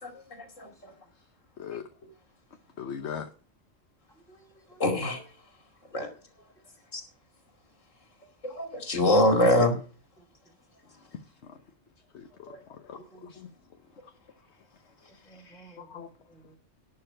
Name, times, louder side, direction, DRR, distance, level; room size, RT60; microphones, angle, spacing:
voice 1, 0.0-0.9 4.8-5.2 5.9-6.1 6.9-7.0 8.4-9.8 12.5-12.6, left 1 dB, 90° left, 2.9 m, -25 dB
voice 2, 1.6-1.9 2.8-3.3 10.8-11.6 12.1-16.1, left 7 dB, 65° left, 1.2 m, -43 dB
voice 3, 4.1-4.8 5.9-6.0 10.2-10.5 13.1-13.2 15.1-16.6, right 2 dB, 5° left, 3.2 m, -56 dB
11.5 x 5.6 x 8.9 m
omnidirectional pair, 1.3 m